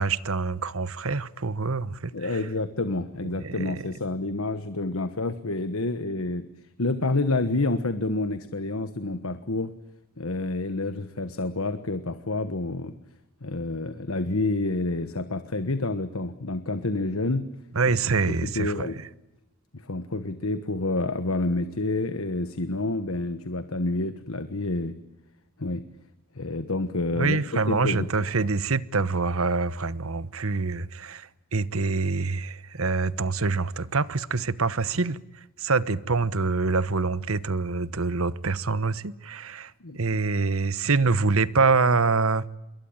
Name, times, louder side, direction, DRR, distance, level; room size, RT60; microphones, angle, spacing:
voice 1, 0.0-2.4 3.2-3.8 17.7-18.9 27.1-42.5, right 4 dB, 75° right, 1.1 m, -26 dB
voice 2, 2.1-6.5 6.8-9.7 10.2-12.9 13.4-17.4 18.3-19.0 19.7-25.0 25.6-25.8 26.3-27.4 27.7-28.1 39.8-40.2, left 2 dB, 70° left, 1.4 m, -28 dB
27.5 x 22.5 x 8.9 m
head